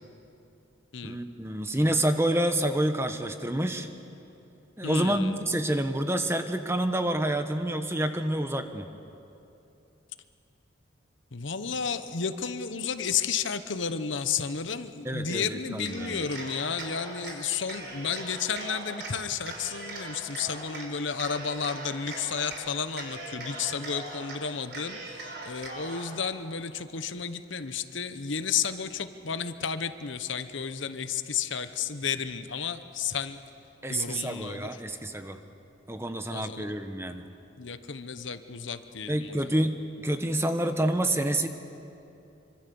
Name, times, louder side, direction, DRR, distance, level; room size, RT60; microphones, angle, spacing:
voice 1, 1.0-3.9 4.8-8.9 15.0-16.3 33.8-35.4 35.9-37.2 39.1-41.5, right 1 dB, 15° right, 7 dB, 1.1 m, -28 dB
voice 2, 4.8-5.3 11.3-25.2 25.4-33.4 33.9-34.7 36.3-36.6 37.6-39.5, left 6 dB, 70° left, 10 dB, 1.0 m, -32 dB
Cheering, 15.8-17.4 17.7-19.1 19.4-20.9 21.2-22.6 22.9-24.4 24.7-26.1, right 2 dB, 55° right, 4.9 m, -40 dB
26.5 x 25.0 x 7.1 m, 2.8 s
head